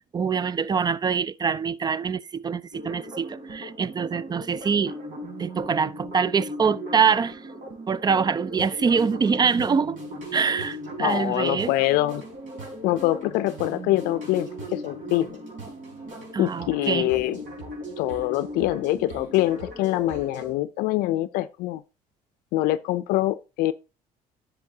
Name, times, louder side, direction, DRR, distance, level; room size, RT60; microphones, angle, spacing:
voice 1, 0.1-4.9 5.4-7.4 7.9-10.0 10.3-11.7 16.3-17.1, right 6 dB, 25° right, 0.4 m, -24 dB
sound 1, 2.7-20.5, right 1 dB, 60° right, 4.5 m, -38 dB
voice 2, 11.0-12.2 12.8-15.4 16.4-17.4 18.0-21.8 22.5-23.7, left 16 dB, 80° left, 0.5 m, -24 dB
10.5 x 6.6 x 2.8 m
supercardioid pair, 85°, 15 cm